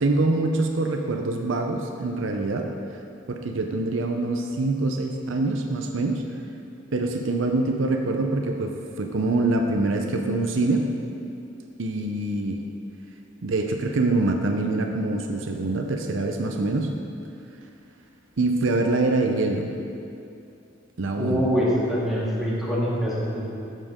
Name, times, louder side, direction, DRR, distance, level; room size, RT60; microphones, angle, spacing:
voice 1, 0.0-2.7 3.3-6.2 6.9-10.9 11.8-12.6 13.4-16.9 18.4-19.7 21.0-21.4, right 2 dB, 70° right, 3 dB, 0.7 m, -25 dB
voice 2, 21.2-23.4, equal, ahead, -8 dB, 2.1 m, -24 dB
13.5 x 7.5 x 3.7 m, 2.7 s
head